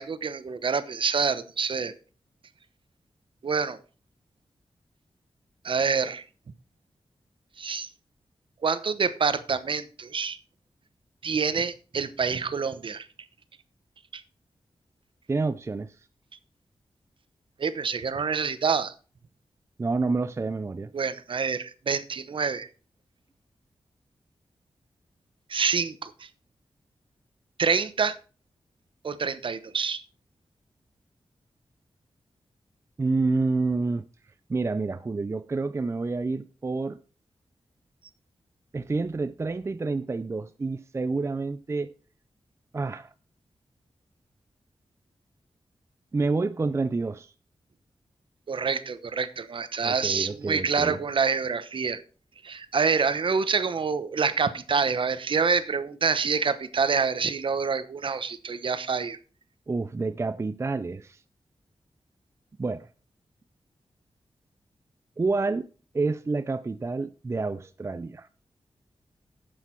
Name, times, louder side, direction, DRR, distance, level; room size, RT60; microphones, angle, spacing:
voice 1, 0.0-1.9 3.4-3.8 5.6-6.2 7.6-7.9 8.6-10.4 11.2-13.1 14.1-14.2 17.6-18.9 20.9-22.7 25.5-26.3 27.6-28.2 29.0-30.0 48.5-52.0 52.4-59.2, right 5 dB, 60° right, 0.9 m, -27 dB
voice 2, 15.3-15.9 19.8-20.9 33.0-34.0 34.5-37.0 38.7-41.9 42.7-43.1 46.1-47.3 49.8-51.0 59.7-61.2 62.6-62.9 65.2-65.7 65.9-68.3, right 3 dB, 30° right, 0.5 m, -28 dB
10.0 x 8.2 x 4.5 m
wide cardioid pair, 110°, 10 cm